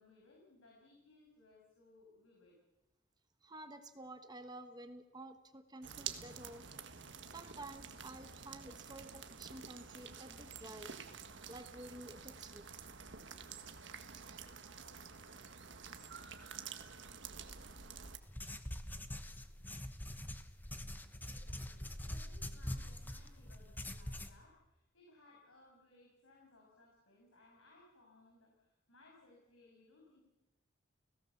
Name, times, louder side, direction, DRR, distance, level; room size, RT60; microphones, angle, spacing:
voice 1, 0.0-2.6 18.3-18.4 21.2-30.2, left 2 dB, 80° left, -2 dB, 6.9 m, -64 dB
voice 2, 3.4-6.7 7.3-10.9 11.5-12.6, right 1 dB, 20° right, 8 dB, 1.2 m, -51 dB
sound 1, 5.8-18.2, right 6 dB, 60° right, 1.7 m, -49 dB
sound 2, 18.2-24.3, left 1 dB, 10° left, 1.1 m, -44 dB
30.0 x 17.5 x 7.2 m, 1.0 s
head